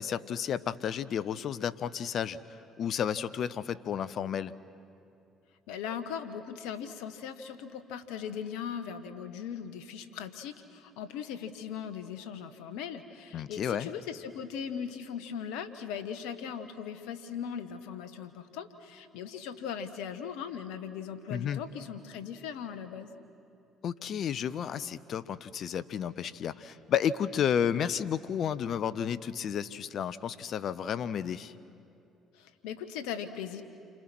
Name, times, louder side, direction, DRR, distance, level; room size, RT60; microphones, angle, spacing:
voice 1, 0.0-2.4 2.8-4.5 13.3-13.9 21.3-21.6 23.8-31.5, left 8 dB, 60° left, 15 dB, 0.8 m, -32 dB
voice 2, 5.7-23.1 32.3-33.6, left 8 dB, 75° left, 9 dB, 1.3 m, -39 dB
29.0 x 26.5 x 6.1 m, 2.6 s
hypercardioid pair, 55°, 0 cm